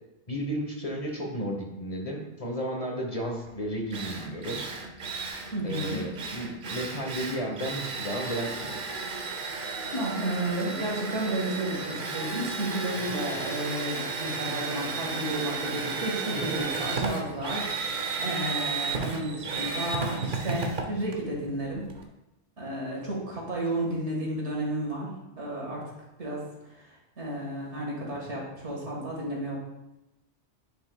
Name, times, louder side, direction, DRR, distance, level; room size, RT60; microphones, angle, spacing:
voice 1, 0.3-4.6 5.6-8.8 12.4-12.5 16.3-16.9, equal, 35° left, 0 dB, 1.0 m, -33 dB
Drill, 3.5-3.6 3.9-22.0, right 4 dB, 50° right, 0.8 m, -33 dB
voice 2, 5.5-6.0 9.9-21.9 22.6-25.8 26.2-26.4 26.8-26.9 27.2-29.6, right 1 dB, 85° right, -3 dB, 2.0 m, -32 dB
9.3 x 5.0 x 2.3 m, 0.96 s
omnidirectional pair, 1.2 m